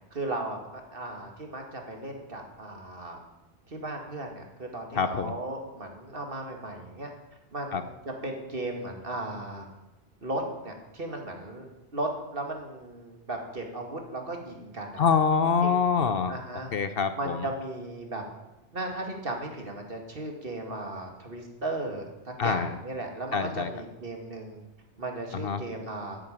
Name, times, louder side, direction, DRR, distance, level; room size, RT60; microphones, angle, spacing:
voice 1, 0.1-3.2 3.7-7.1 7.5-9.7 10.2-11.7 11.9-15.2 15.6-16.0 16.3-16.7 17.2-18.2 18.7-24.6 25.0-26.2, right 2 dB, 55° right, 2 dB, 2.6 m, -36 dB
voice 2, 5.0-5.3 7.7-7.8 15.0-16.3 16.7-17.4 22.4-22.8 23.3-23.7 25.3-25.6, left 6 dB, 60° left, 11 dB, 1.0 m, -25 dB
11.0 x 9.0 x 9.2 m, 0.97 s
omnidirectional pair, 1.1 m